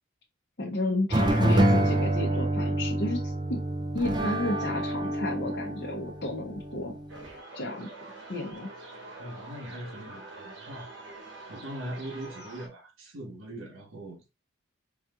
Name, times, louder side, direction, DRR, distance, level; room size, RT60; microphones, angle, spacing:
voice 1, 0.6-3.6 3.9-7.0 7.5-7.9 8.3-8.7, left 2 dB, 50° left, 0.7 m, -32 dB
sound 1, 1.1-7.3, right 1 dB, 20° right, 0.4 m, -27 dB
sound 2, 7.1-12.7, right 2 dB, 65° right, 1.2 m, -45 dB
voice 2, 9.2-10.9 11.5-14.2, right 1 dB, 85° right, 1.3 m, -40 dB
4.8 x 2.9 x 2.4 m
head